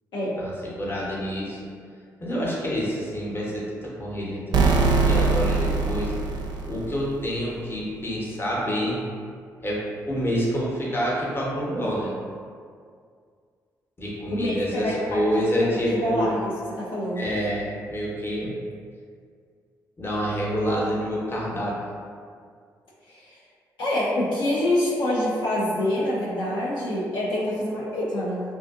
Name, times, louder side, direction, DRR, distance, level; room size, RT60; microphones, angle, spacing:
voice 1, 0.4-1.6 2.2-6.1 6.7-9.0 9.6-12.1 14.0-16.4 17.1-18.5 20.0-21.7, equal, 25° left, -5 dB, 0.9 m, -27 dB
sound 1, 4.5-7.2, right 4 dB, 55° right, 0.4 m, -22 dB
voice 2, 14.4-15.2 15.6-17.3 23.1-23.2 23.8-28.4, left 1 dB, 65° left, -7 dB, 0.5 m, -26 dB
2.6 x 2.4 x 2.4 m, 2.1 s
hypercardioid pair, 40°, 9 cm